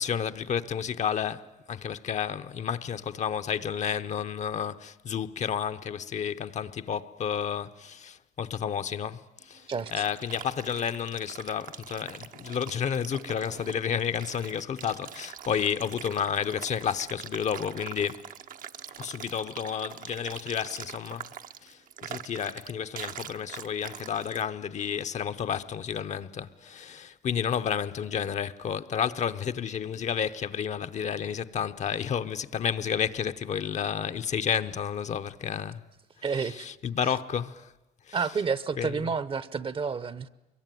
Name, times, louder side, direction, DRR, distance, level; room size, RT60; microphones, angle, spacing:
voice 1, 0.0-18.2 19.0-21.2 21.6-35.8 36.4-37.7 38.1-38.2 38.8-39.0, left 8 dB, 50° left, 0.9 m, -31 dB
sound 1, 9.4-24.5, right 9 dB, 60° right, 0.9 m, -44 dB
voice 2, 9.7-10.0 36.2-36.7 37.0-37.1 38.1-40.3, right 5 dB, 35° right, 0.9 m, -30 dB
24.5 x 22.5 x 9.2 m
cardioid pair, 120°, 16 cm